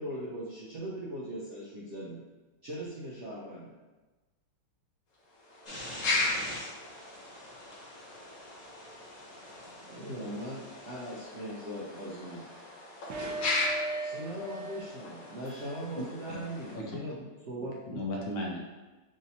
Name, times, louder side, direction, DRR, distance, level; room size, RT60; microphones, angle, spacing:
voice 1, 0.0-2.2 2.6-3.7 9.6-12.5 14.0-18.0, right 1 dB, 55° right, -7 dB, 0.8 m, -40 dB
sound 1, 5.2-16.8, left 2 dB, 55° left, 1.2 m, -37 dB
sound 2, 5.7-11.3, left 1 dB, 30° left, 0.8 m, -46 dB
voice 2, 6.9-8.3 8.7-9.1 15.4-16.4, left 3 dB, 5° right, -9 dB, 1.1 m, -62 dB
sound 3, 13.1-14.9 15.2-15.4, right 2 dB, 85° right, 1.4 m, -37 dB
voice 3, 15.9-16.4 16.7-17.0 17.6-18.6, left 1 dB, 75° left, -2 dB, 1.5 m, -36 dB
6.1 x 2.8 x 2.8 m, 1.2 s
omnidirectional pair, 2.1 m